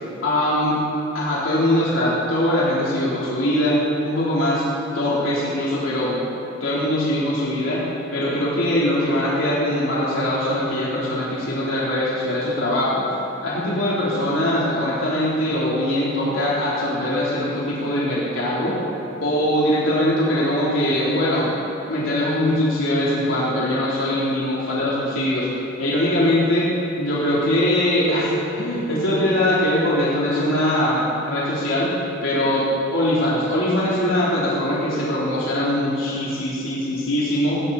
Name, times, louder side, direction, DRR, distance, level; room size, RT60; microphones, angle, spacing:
voice 1, 0.2-0.8 1.1-3.8 4.0-4.6 4.9-6.2 6.6-7.8 8.1-13.0 13.4-18.8 19.2-21.5 21.9-25.5 25.8-26.7 27.0-31.9 32.2-37.6, left 1 dB, 80° left, -8 dB, 3.7 m, -21 dB
18.0 x 17.5 x 4.2 m, 2.8 s
head